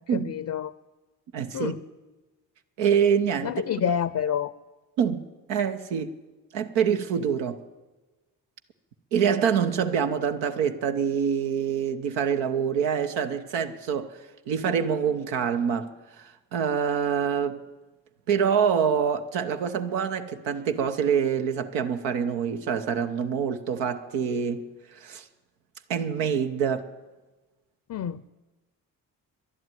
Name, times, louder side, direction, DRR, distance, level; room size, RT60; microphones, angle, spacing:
voice 1, 0.1-0.7 1.5-1.8 3.4-4.5 27.9-28.3, left 8 dB, 45° left, 0.5 m, -28 dB
voice 2, 1.3-1.7 2.8-3.5 5.0-6.1 6.5-7.6 9.1-14.2 14.5-17.6 18.3-25.2 25.9-26.9, right 7 dB, 85° right, 0.9 m, -26 dB
11.5 x 11.0 x 9.1 m
supercardioid pair, 50°, 42 cm